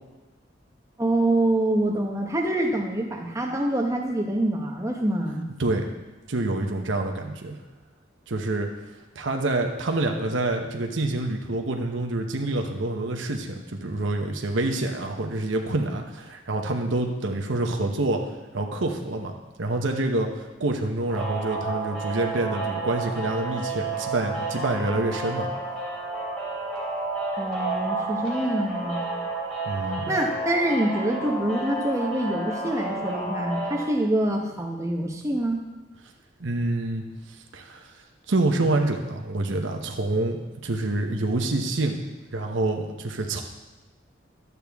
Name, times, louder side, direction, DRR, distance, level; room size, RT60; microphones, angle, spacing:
voice 1, 1.0-5.5 27.4-29.1 30.1-35.6, right 1 dB, 15° right, 1 dB, 1.1 m, -25 dB
voice 2, 6.3-7.6 8.3-8.7 9.1-18.3 18.5-19.3 19.6-25.5 29.7-30.2 36.4-37.0 37.5-37.9 38.3-43.4, right 2 dB, 85° right, 3 dB, 1.0 m, -27 dB
sound 1, 21.1-33.9, right 2 dB, 10° left, 2.7 m, -31 dB
12.0 x 8.2 x 3.5 m, 1.1 s
head